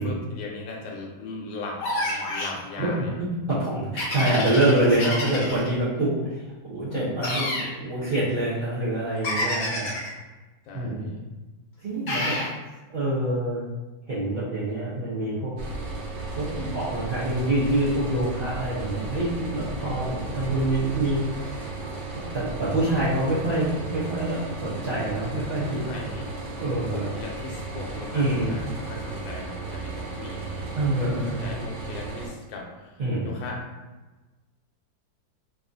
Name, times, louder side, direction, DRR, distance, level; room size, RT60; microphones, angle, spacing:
voice 1, 0.0-3.1 10.7-11.2 19.8-20.2 24.9-25.3 25.8-26.3 26.9-33.6, left 3 dB, 90° left, -1 dB, 1.3 m, -39 dB
sound 1, 1.8-2.6 4.0-5.7 7.2-7.7 9.2-10.1 12.1-12.5, left 1 dB, 55° left, 1.1 m, -28 dB
voice 2, 3.2-6.4 6.6-9.9 10.7-11.1 11.8-12.4 12.9-13.6 14.1-15.5 16.4-21.3 21.5-21.6 22.3-25.8 26.6-27.1 28.1-28.5 30.7-31.4 33.0-33.3, right 1 dB, 55° right, -11 dB, 0.6 m, -26 dB
sound 2, 15.6-32.3, right 3 dB, 80° right, 1.4 m, -35 dB
3.3 x 2.3 x 2.5 m, 1.2 s
omnidirectional pair, 2.0 m